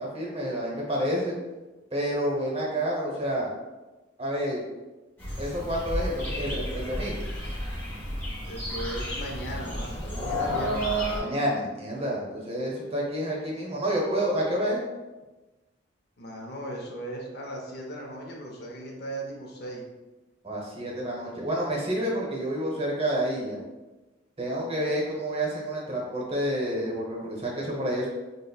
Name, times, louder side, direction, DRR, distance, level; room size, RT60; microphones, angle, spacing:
voice 1, 0.0-1.4 1.9-3.5 4.2-4.6 5.4-7.3 11.2-14.8 20.4-23.6 24.4-28.1, right 1 dB, 30° right, -3 dB, 0.7 m, -29 dB
sound 1, 5.2-11.2, equal, 10° left, 0.9 m, -31 dB
voice 2, 8.4-10.9 16.2-19.8, right 1 dB, 55° left, 0 dB, 0.5 m, -37 dB
5.1 x 2.0 x 2.3 m, 1.1 s
head